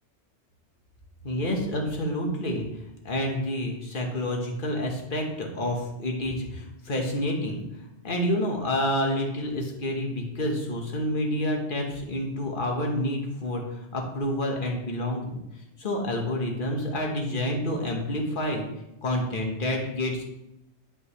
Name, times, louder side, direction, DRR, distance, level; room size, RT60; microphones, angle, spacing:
voice 1, 1.2-2.7 3.0-7.6 8.0-15.4 15.8-18.7 19.0-20.2, left 1 dB, 45° left, 1 dB, 1.5 m, -28 dB
10.5 x 5.8 x 3.3 m, 0.89 s
omnidirectional pair, 1.2 m